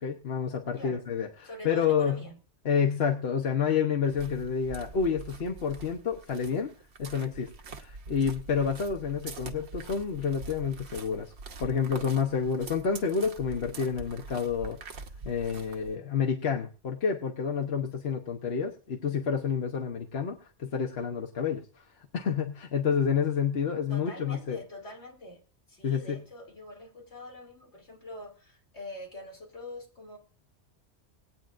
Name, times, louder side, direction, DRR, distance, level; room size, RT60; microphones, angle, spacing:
voice 1, 0.0-2.2 2.6-6.7 7.0-11.3 11.6-15.0 15.2-21.6 22.1-24.6 25.8-26.2, left 6 dB, 65° left, 2 dB, 1.2 m, -29 dB
voice 2, 1.4-2.4 23.9-25.4 25.7-30.2, left 1 dB, 85° left, 0 dB, 3.3 m, -44 dB
sound 1, 4.1-16.0, right 4 dB, 80° right, 1.2 m, -44 dB
19.5 x 9.0 x 2.5 m, 0.35 s
omnidirectional pair, 1.1 m